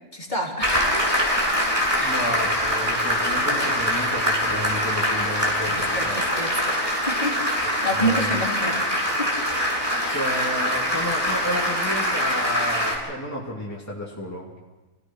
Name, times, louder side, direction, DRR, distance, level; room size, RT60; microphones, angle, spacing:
voice 1, 0.1-1.0 2.0-2.1 5.6-9.3 10.0-10.2, equal, 30° left, -2 dB, 3.8 m, -29 dB
Applause, 0.6-13.0, equal, 20° right, 7.0 m, -24 dB
voice 2, 1.9-6.3 7.9-8.4 10.0-14.5, left 1 dB, 10° left, -4 dB, 2.7 m, -32 dB
27.5 x 17.0 x 6.2 m, 1.1 s
omnidirectional pair, 1.6 m